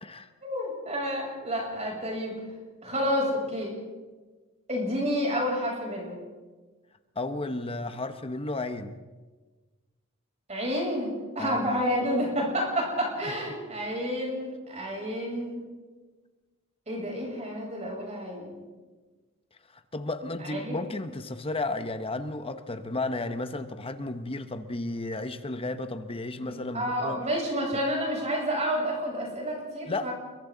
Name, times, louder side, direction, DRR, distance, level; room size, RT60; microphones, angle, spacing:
voice 1, 0.4-2.3 2.8-3.7 4.7-6.2 10.5-15.6 16.9-18.6 20.4-20.8 26.4-30.1, equal, 30° right, -1 dB, 7.5 m, -30 dB
voice 2, 7.2-9.0 11.4-11.6 13.3-13.4 19.7-27.2 29.9-30.1, left 2 dB, 25° left, 9 dB, 1.0 m, -33 dB
29.5 x 23.0 x 4.0 m, 1.3 s
head